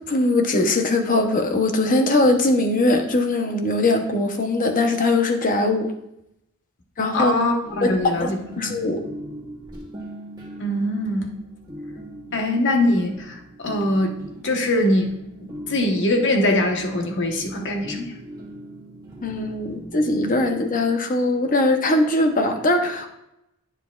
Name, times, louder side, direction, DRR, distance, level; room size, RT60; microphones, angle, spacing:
voice 1, 0.1-5.9 7.0-7.3 7.8-7.9 8.2-8.3 8.6-9.0 19.2-23.1, left 2 dB, 40° left, 5 dB, 0.8 m, -21 dB
voice 2, 7.1-8.4 10.6-11.3 12.3-14.2 14.4-15.1 15.4-18.1, left 1 dB, 60° left, 3 dB, 1.2 m, -22 dB
sound 1, 7.6-20.5, right 1 dB, 20° right, 1.6 m, -40 dB
9.9 x 6.5 x 2.4 m, 0.82 s
head